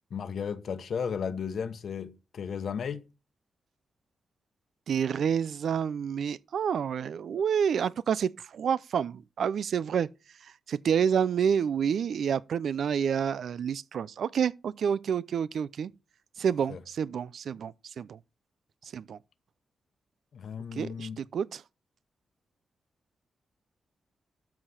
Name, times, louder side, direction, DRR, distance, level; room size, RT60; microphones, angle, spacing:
voice 1, 0.1-3.0 16.7-16.8 20.3-21.2, left 6 dB, 65° left, 1.1 m, -34 dB
voice 2, 4.9-10.1 10.4-15.9 16.4-18.2 18.8-19.2 20.7-21.6, right 7 dB, 70° right, 0.4 m, -29 dB
13.0 x 4.9 x 5.7 m
cardioid pair, 110°, 0 cm